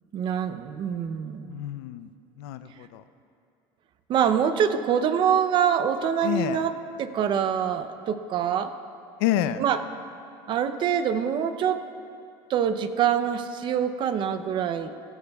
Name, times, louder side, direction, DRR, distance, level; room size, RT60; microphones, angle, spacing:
voice 1, 0.1-1.6 4.1-6.7 7.0-8.7 9.6-9.8 10.5-11.8 12.5-14.9, right 8 dB, 40° right, 10 dB, 0.6 m, -25 dB
voice 2, 1.5-2.1 2.4-3.0 6.2-6.6 9.2-9.6, left 12 dB, 80° left, 12 dB, 0.5 m, -28 dB
17.0 x 15.0 x 2.3 m, 2.5 s
cardioid pair, 150°, 13 cm